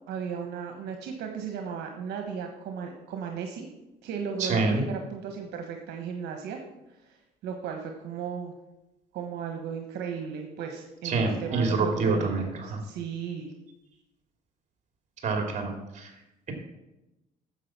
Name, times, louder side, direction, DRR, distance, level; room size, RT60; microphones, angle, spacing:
voice 1, 0.1-3.7 4.0-6.6 7.0-7.2 7.4-8.5 9.1-13.5, right 6 dB, 80° right, 3 dB, 1.2 m, -35 dB
voice 2, 4.4-4.8 11.0-12.8 15.2-16.1, right 3 dB, 45° right, 3 dB, 2.7 m, -27 dB
9.8 x 7.3 x 6.0 m, 0.96 s
cardioid pair, 110°, 17 cm